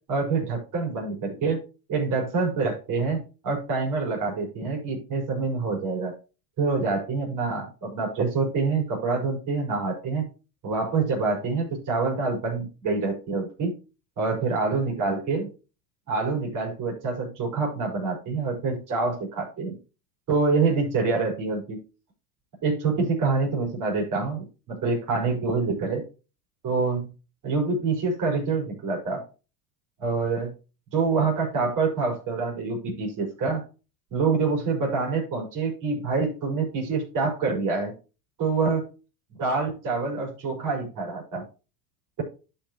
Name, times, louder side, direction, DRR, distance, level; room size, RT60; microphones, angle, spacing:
voice 1, 0.1-1.6 1.9-6.2 6.6-10.3 10.6-13.8 14.2-15.5 16.1-19.8 20.3-21.8 22.6-26.0 26.6-27.1 27.4-29.2 30.0-30.5 30.9-33.6 34.1-37.9 38.4-38.9 39.4-41.4, right 4 dB, 40° right, -1 dB, 5.3 m, -26 dB
11.5 x 5.9 x 3.1 m, 0.32 s
supercardioid pair, 110°, 46 cm